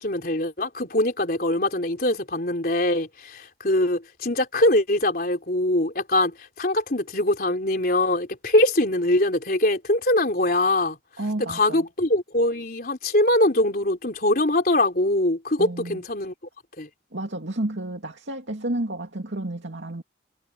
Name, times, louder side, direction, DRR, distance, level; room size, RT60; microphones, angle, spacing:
voice 1, 0.0-11.0 11.5-16.3 16.8-16.9, left 1 dB, 50° left, 3.8 m, -23 dB
voice 2, 11.2-11.8 15.6-16.0 17.1-20.0, right 1 dB, 80° right, 2.3 m, -31 dB
head